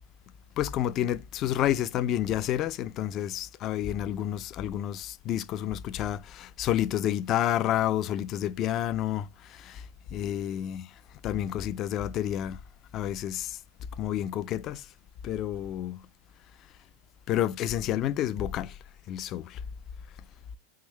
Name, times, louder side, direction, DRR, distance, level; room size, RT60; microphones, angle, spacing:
voice 1, 0.6-9.3 9.6-9.8 10.1-10.9 11.2-12.6 12.9-13.6 14.0-14.8 15.2-16.0 17.3-18.7 19.1-19.6, left 11 dB, 40° left, 0.3 m, -29 dB
3.7 x 2.6 x 3.1 m
hypercardioid pair, 110°, 0 cm